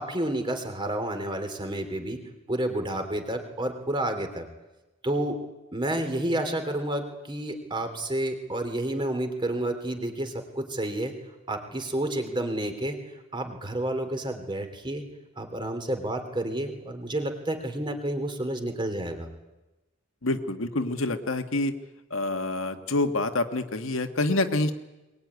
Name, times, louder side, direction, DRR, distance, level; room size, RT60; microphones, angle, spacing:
voice 1, 0.0-2.2 2.5-4.5 5.0-5.4 5.7-11.1 11.5-13.0 13.3-15.0 15.4-19.3, right 1 dB, 25° right, 6 dB, 3.1 m, -30 dB
voice 2, 20.2-21.7 22.1-24.7, left 2 dB, 75° left, 7 dB, 1.7 m, -27 dB
22.0 x 21.0 x 9.6 m, 1.0 s
head